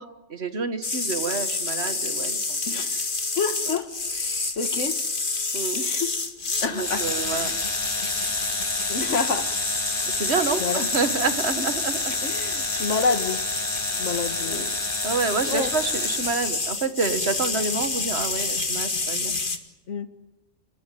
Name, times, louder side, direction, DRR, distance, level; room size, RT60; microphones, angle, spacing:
voice 1, 0.0-2.8 5.5-5.8 6.7-7.5 10.1-12.1 14.5-14.6 15.0-19.3, right 4 dB, 60° right, 10 dB, 1.8 m, -28 dB
sound 1, 0.8-19.6, left 3 dB, 45° left, 2.0 m, -28 dB
voice 2, 2.7-3.0 3.4-5.0 5.7-6.1 6.6-7.1 7.3-7.6 8.9-9.5 10.6-10.9 11.6-11.7 12.2-13.4 14.0-14.8 15.5-15.7 19.9-20.1, left 4 dB, 90° left, 10 dB, 1.9 m, -28 dB
sound 2, 6.6-16.5, equal, 15° left, 1.7 m, -35 dB
27.5 x 19.5 x 9.2 m, 1.0 s
omnidirectional pair, 1.2 m